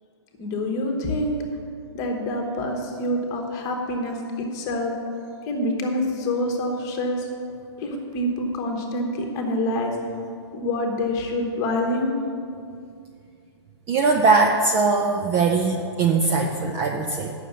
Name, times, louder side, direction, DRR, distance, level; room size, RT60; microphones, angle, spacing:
voice 1, 0.4-1.4 1.9-4.9 5.5-7.3 7.8-10.0 10.5-12.2, left 1 dB, 20° left, 2 dB, 1.1 m, -26 dB
voice 2, 13.9-17.3, right 4 dB, 15° right, 2 dB, 0.3 m, -20 dB
8.4 x 6.2 x 6.8 m, 2.4 s
hypercardioid pair, 155°, 15 cm